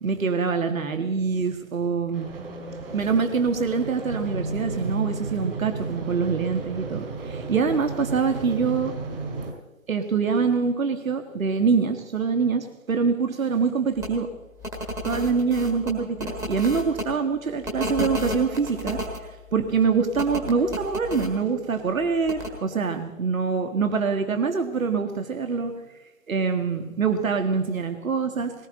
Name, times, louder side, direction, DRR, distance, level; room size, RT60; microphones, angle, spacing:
voice 1, 0.0-2.3 2.9-8.9 9.9-14.3 15.0-19.1 19.5-25.8 26.3-28.5, right 5 dB, 65° right, 7 dB, 1.9 m, -25 dB
sound 1, 2.1-9.5, right 3 dB, 40° right, 4.0 m, -33 dB
sound 2, 14.0-14.1 14.6-17.0 17.6-19.2 20.2-21.3 22.3-22.5, equal, 5° right, 1.5 m, -31 dB
20.0 x 18.0 x 3.9 m, 1.1 s
figure-of-eight pair, 150°, 43 cm